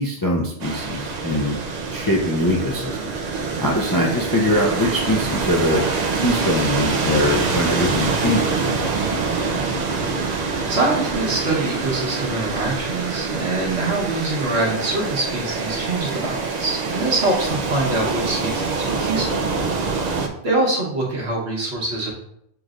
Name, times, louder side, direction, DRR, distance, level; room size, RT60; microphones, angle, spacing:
voice 1, 0.0-1.6 1.9-3.1 3.6-5.8 6.1-9.1 20.2-20.3, left 1 dB, 30° left, -2 dB, 0.4 m, -22 dB
sound 1, 0.6-20.3, right 4 dB, 50° right, 0.5 m, -25 dB
voice 2, 9.9-19.5 20.4-22.1, right 2 dB, 70° right, -3 dB, 1.5 m, -24 dB
6.9 x 3.1 x 2.5 m, 0.73 s
omnidirectional pair, 1.1 m